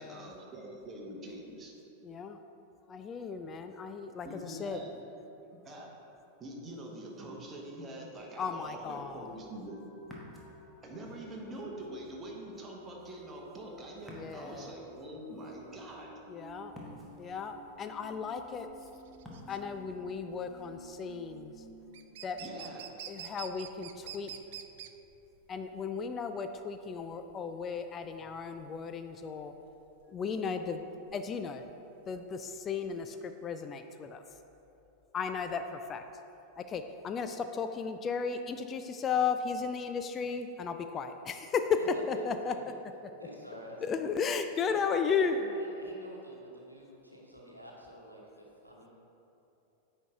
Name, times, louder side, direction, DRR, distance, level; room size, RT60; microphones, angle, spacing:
voice 1, 0.0-1.7 4.2-4.9 5.6-5.9 6.4-9.8 10.8-16.1 22.4-23.1, right 1 dB, 20° right, -2 dB, 1.2 m, -44 dB
voice 2, 2.0-2.4 2.9-4.8 8.4-9.3 14.1-14.7 16.3-16.7 17.2-18.7 19.5-21.6 22.2-22.4 23.1-24.3 25.5-29.5 30.1-31.6 32.1-34.2 35.1-36.0 36.6-41.6 42.1-42.5 43.8-45.4, left 6 dB, 25° left, 8 dB, 0.3 m, -35 dB
sound 1, 9.6-22.1 22.5-22.6 22.9-25.6, equal, 65° left, 1.3 m, -55 dB
Ocean, 10.0-21.2, left 1 dB, 5° left, 1.2 m, -56 dB
sound 2, 16.8-33.1, right 10 dB, 55° right, 0.3 m, -49 dB
voice 3, 43.2-44.1 44.6-44.7 45.0-48.9, equal, 90° right, -3 dB, 1.0 m, -48 dB
9.0 x 4.5 x 3.6 m, 2.9 s
figure-of-eight pair, 90°, 0 cm